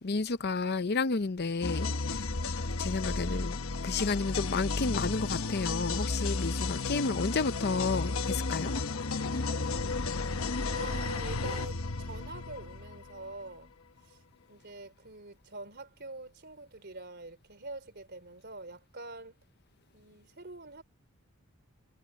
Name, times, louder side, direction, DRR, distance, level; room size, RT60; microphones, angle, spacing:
voice 1, 0.0-2.3 2.8-8.7, left 4 dB, 45° left, 0.7 m, -31 dB
sound 1, 1.6-13.3, left 3 dB, 65° left, 1.1 m, -33 dB
voice 2, 10.7-13.7 14.0-14.2 14.5-19.4 19.9-20.8, right 3 dB, 50° right, 3.7 m, -45 dB
head